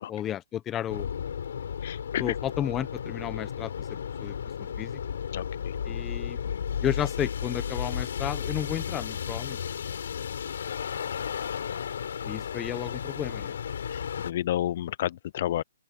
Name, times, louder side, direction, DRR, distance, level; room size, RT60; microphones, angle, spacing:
voice 1, 0.1-1.1 2.2-3.7 4.2-5.0 5.9-6.4 6.8-9.6 12.2-13.5, left 11 dB, 15° left, 0.9 m, -32 dB
sound 1, 0.9-14.3, left 7 dB, 65° left, 4.2 m, -33 dB
voice 2, 1.8-2.3 5.3-5.7 13.9-15.6, left 12 dB, 45° left, 0.5 m, -31 dB
open air
hypercardioid pair, 160°, 0 cm